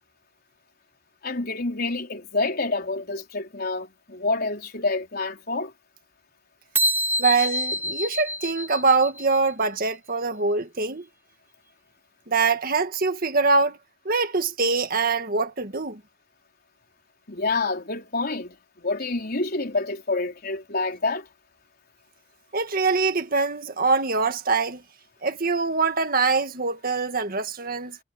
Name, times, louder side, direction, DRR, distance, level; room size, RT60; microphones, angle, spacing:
voice 1, 1.2-5.7 17.3-21.3, left 3 dB, 55° left, 4.4 m, -28 dB
sound 1, 6.8-9.4, equal, 10° right, 3.1 m, -26 dB
voice 2, 7.2-11.1 12.3-13.8 14.1-16.0 22.5-24.8 25.2-28.0, right 4 dB, 50° right, 1.8 m, -24 dB
head